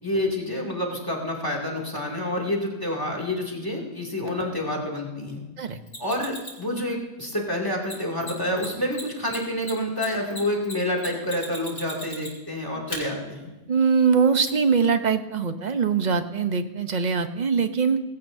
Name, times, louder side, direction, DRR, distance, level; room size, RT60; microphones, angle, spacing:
voice 1, 0.0-5.4 6.0-13.5, left 1 dB, 15° left, 0 dB, 2.5 m, -28 dB
Mechanisms, 5.9-6.6 7.8-7.9 8.2-8.3 8.6-8.7 8.9-12.5 12.9-13.0 14.4-14.5, left 1 dB, 70° left, 4.1 m, -36 dB
voice 2, 13.7-18.0, right 5 dB, 40° right, 9 dB, 0.8 m, -22 dB
19.5 x 16.5 x 2.7 m, 1.1 s
omnidirectional pair, 1.3 m